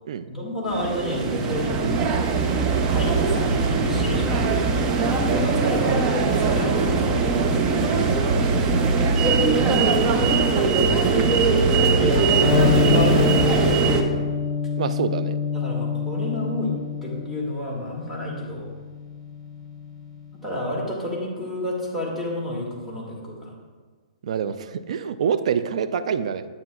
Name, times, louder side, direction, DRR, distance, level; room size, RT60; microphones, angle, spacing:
voice 1, 0.3-2.1 2.8-4.8 5.3-7.6 9.3-10.5 11.9-13.6 15.5-18.7 20.4-23.5, left 1 dB, 5° right, -5 dB, 2.0 m, -30 dB
sound 1, 0.7-14.0, right 4 dB, 25° right, 0.7 m, -21 dB
voice 2, 3.2-3.6 11.1-11.3 14.8-15.4 24.2-26.5, right 7 dB, 65° right, 12 dB, 0.4 m, -26 dB
Electric guitar, 12.4-20.3, left 6 dB, 20° left, 1.9 m, -26 dB
9.7 x 8.7 x 2.4 m, 1.5 s
hypercardioid pair, 140°, 4 cm